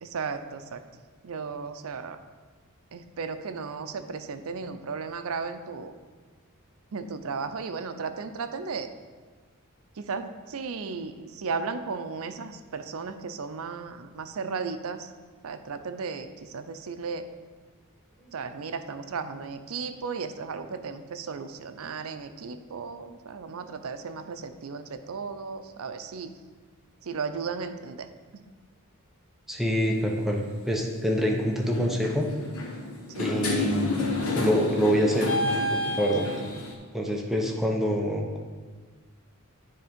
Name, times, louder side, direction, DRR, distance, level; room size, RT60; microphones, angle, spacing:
voice 1, 0.0-0.8 1.2-2.2 2.9-5.9 6.9-8.9 10.0-15.1 15.4-17.3 18.3-26.3 27.0-28.1 28.3-28.5 33.1-33.3, right 5 dB, 70° right, 9 dB, 0.5 m, -35 dB
voice 2, 29.5-32.3 33.2-34.0 34.3-35.3 35.7-36.3 36.9-38.4, equal, ahead, 0 dB, 0.7 m, -26 dB
sound 1, 29.8-30.1 31.0-31.3 31.6-36.7, left 2 dB, 65° left, 1.1 m, -29 dB
9.6 x 3.5 x 5.1 m, 1.5 s
head